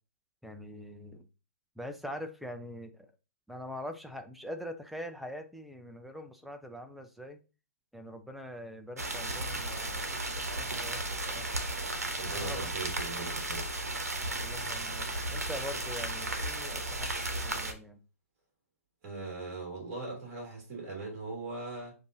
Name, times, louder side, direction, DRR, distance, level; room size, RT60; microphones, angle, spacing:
voice 1, 0.4-1.3 1.8-3.1 3.5-7.4 7.9-11.5 12.4-12.7 14.3-18.0, equal, ahead, 6 dB, 0.4 m, -43 dB
sound 1, 9.0-17.7, right 2 dB, 85° right, 0.8 m, -34 dB
voice 2, 12.2-13.7 19.0-22.0, right 3 dB, 35° right, -2 dB, 2.4 m, -40 dB
6.9 x 2.5 x 2.7 m, 0.33 s
figure-of-eight pair, 125°, 8 cm